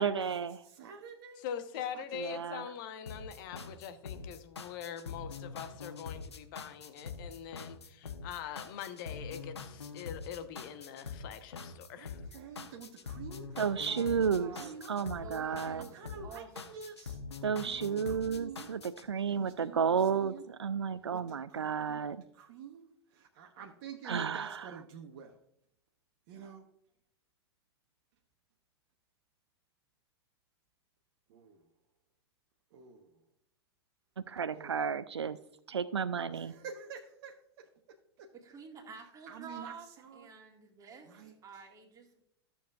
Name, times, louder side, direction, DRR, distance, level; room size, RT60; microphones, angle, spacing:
voice 1, 0.0-0.6 2.1-2.6 13.6-14.5 14.9-15.8 17.4-22.2 24.0-24.8 34.3-35.4 35.7-36.5, right 6 dB, 85° right, 0.4 m, -32 dB
voice 2, 0.6-1.5 1.9-2.0 2.3-2.5 11.9-14.0 14.5-15.3 15.9-17.2 17.6-18.9 19.3-20.5 21.1-22.0 22.3-25.4 26.3-26.6 31.3-31.6 32.7-33.1 34.5-34.9 36.2-37.7 38.2-38.3 39.3-40.3 41.1-41.3, right 6 dB, 50° right, 1.0 m, -49 dB
voice 3, 1.4-12.2, left 9 dB, 50° left, 1.0 m, -43 dB
sound 1, 3.1-19.1, left 5 dB, 80° left, 0.9 m, -44 dB
voice 4, 13.9-14.7 15.2-16.0 16.2-16.5 38.3-39.9 40.1-42.2, right 5 dB, 25° right, 2.0 m, -49 dB
13.5 x 7.0 x 2.4 m
figure-of-eight pair, 95°, 14 cm